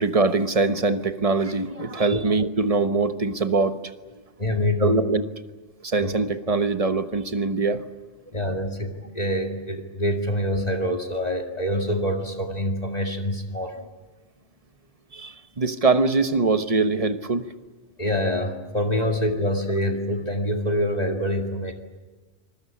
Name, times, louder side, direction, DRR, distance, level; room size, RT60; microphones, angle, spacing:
voice 1, 0.0-3.8 4.8-5.2 5.8-7.8 15.1-17.5, right 3 dB, 30° right, 9 dB, 1.2 m, -23 dB
voice 2, 4.4-5.0 6.0-6.1 8.3-13.8 18.0-21.7, equal, 35° left, 3 dB, 2.3 m, -25 dB
27.0 x 21.0 x 8.6 m, 1.3 s
omnidirectional pair, 1.2 m